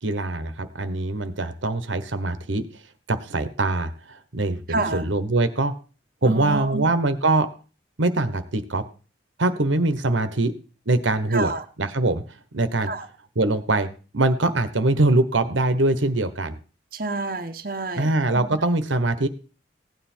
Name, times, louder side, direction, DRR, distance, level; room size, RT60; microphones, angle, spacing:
voice 1, 0.0-2.7 3.1-5.7 6.2-7.5 8.0-8.8 9.4-10.5 10.9-12.2 12.5-12.9 13.3-13.9 14.1-16.6 17.9-19.3, right 2 dB, 90° right, 12 dB, 1.2 m, -23 dB
voice 2, 4.7-5.1 6.2-6.9 11.3-11.6 12.9-13.1 16.9-18.5, right 3 dB, 50° right, 6 dB, 0.9 m, -28 dB
16.0 x 9.4 x 4.4 m, 0.37 s
head